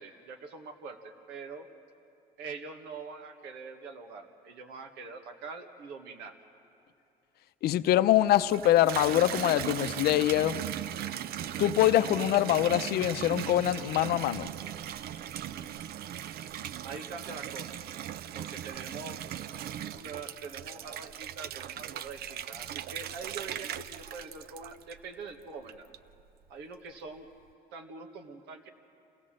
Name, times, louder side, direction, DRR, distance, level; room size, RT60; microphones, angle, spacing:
voice 1, 0.0-1.7 2.4-6.3 16.8-17.7 18.3-19.2 19.9-25.9 26.5-27.3 27.7-28.7, right 4 dB, 85° right, 5 dB, 1.6 m, -44 dB
voice 2, 7.6-10.6 11.6-14.5, left 13 dB, 70° left, 12 dB, 0.6 m, -24 dB
Water tap faucet / Bathtub (filling or washing), 8.3-25.2 25.7-26.3, right 10 dB, 65° right, 0.6 m, -38 dB
26.5 x 16.5 x 7.5 m, 2.6 s
cardioid pair, 110°, 17 cm